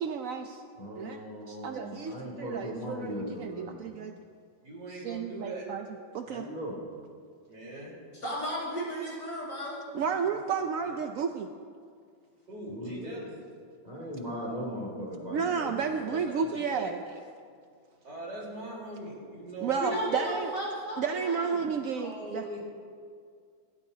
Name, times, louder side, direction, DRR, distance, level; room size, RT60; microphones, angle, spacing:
voice 1, 0.0-0.6 1.0-1.2 1.5-4.1 4.9-5.8 6.1-6.5 9.9-11.5 15.3-17.0 19.6-20.5 21.0-22.4, right 6 dB, 75° right, 5 dB, 0.7 m, -32 dB
voice 2, 0.8-3.8 6.3-6.8 12.7-13.2 13.8-15.8 16.1-16.2, equal, 20° left, -4 dB, 2.6 m, -38 dB
voice 3, 4.6-5.7 7.5-7.9 10.3-10.4 10.8-10.9 12.5-13.3 16.1-16.4 16.7-16.9 18.0-20.1 21.9-22.6, right 1 dB, 55° right, -4 dB, 4.7 m, -41 dB
voice 4, 8.1-9.8 19.6-21.5, equal, 40° left, -6 dB, 5.0 m, -34 dB
28.0 x 12.5 x 2.8 m, 2.2 s
omnidirectional pair, 2.1 m